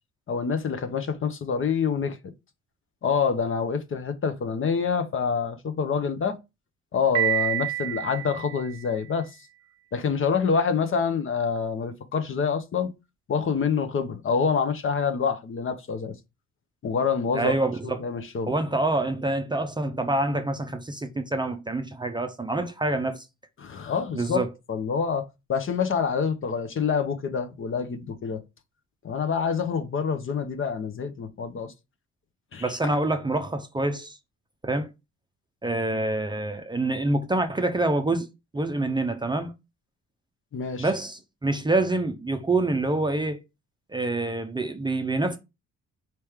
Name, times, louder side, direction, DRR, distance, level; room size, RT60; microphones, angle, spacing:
voice 1, 0.3-2.3 3.0-6.4 6.9-9.3 9.9-12.9 13.3-16.1 16.8-17.5 17.8-18.5 23.6-28.4 29.0-31.7 32.5-32.6 40.5-40.9, left 6 dB, 45° left, 0.7 m, -26 dB
Piano, 7.1-9.1, right 13 dB, 60° right, 0.6 m, -28 dB
voice 2, 17.3-18.0 18.5-23.2 24.1-24.5 32.6-34.2 34.6-34.9 35.6-38.3 38.5-39.5 40.8-43.4 43.9-45.4, right 2 dB, 15° right, 0.5 m, -26 dB
4.4 x 3.1 x 3.5 m
cardioid pair, 90°, 30 cm